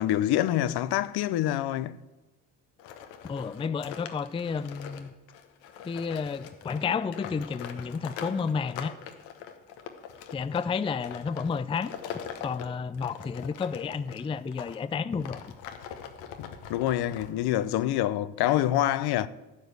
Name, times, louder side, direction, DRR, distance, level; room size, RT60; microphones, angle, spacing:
voice 1, 0.0-2.0 16.4-19.3, left 13 dB, 60° left, 0.7 m, -26 dB
sound 1, 2.8-14.8 15.2-17.7, left 8 dB, 75° left, 1.2 m, -43 dB
voice 2, 3.2-5.1 5.8-8.9 10.3-11.9 12.4-15.5, left 5 dB, 15° left, 0.4 m, -31 dB
12.5 x 5.0 x 8.2 m
hypercardioid pair, 60°, 44 cm